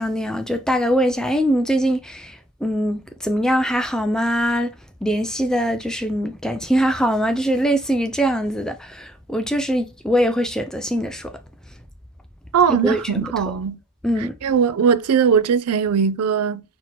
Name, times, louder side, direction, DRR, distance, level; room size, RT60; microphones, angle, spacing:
voice 1, 0.0-4.7 5.0-11.3 12.7-13.3 14.0-14.3, equal, 5° left, 0.4 m, -22 dB
voice 2, 12.5-13.8 14.4-16.6, right 6 dB, 85° right, 0.4 m, -19 dB
4.4 x 2.8 x 4.1 m
head